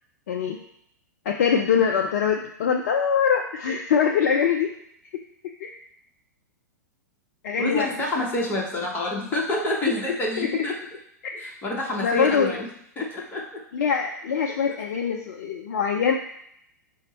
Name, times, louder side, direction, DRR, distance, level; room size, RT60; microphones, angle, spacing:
voice 1, 0.3-0.6 1.3-4.7 5.6-5.7 7.4-7.9 10.4-10.6 12.0-12.6 13.7-16.1, left 7 dB, 55° left, 3 dB, 0.4 m, -23 dB
voice 2, 7.6-10.8 11.4-12.7 13.0-13.6, left 2 dB, 20° left, -1 dB, 1.0 m, -27 dB
5.0 x 2.1 x 4.1 m, 0.73 s
figure-of-eight pair, 100°, 10 cm